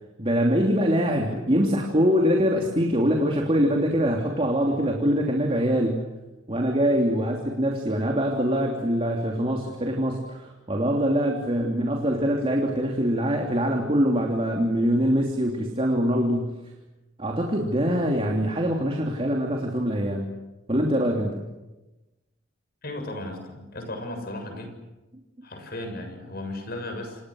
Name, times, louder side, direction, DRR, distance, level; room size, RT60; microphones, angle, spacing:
voice 1, 0.2-6.1 6.5-16.6 17.2-20.3 20.7-21.5, equal, 30° right, 1 dB, 3.1 m, -24 dB
voice 2, 22.8-24.8 25.4-27.2, left 1 dB, 50° left, 5 dB, 7.1 m, -35 dB
29.5 x 28.0 x 6.5 m, 1.1 s
head